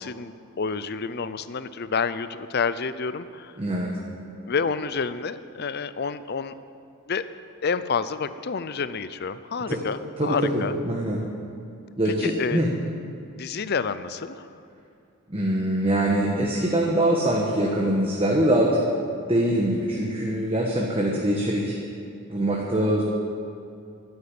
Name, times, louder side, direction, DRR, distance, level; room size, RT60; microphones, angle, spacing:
voice 1, 0.0-3.6 4.4-6.5 7.1-7.2 7.6-10.8 12.1-12.6 13.4-14.5, left 5 dB, 45° left, 13 dB, 0.5 m, -29 dB
voice 2, 3.6-3.9 9.7-9.8 10.2-11.2 12.0-12.7 15.3-18.8 19.3-21.8 22.3-23.0, right 1 dB, 25° right, -2 dB, 1.3 m, -23 dB
12.5 x 9.6 x 8.6 m, 2.5 s
head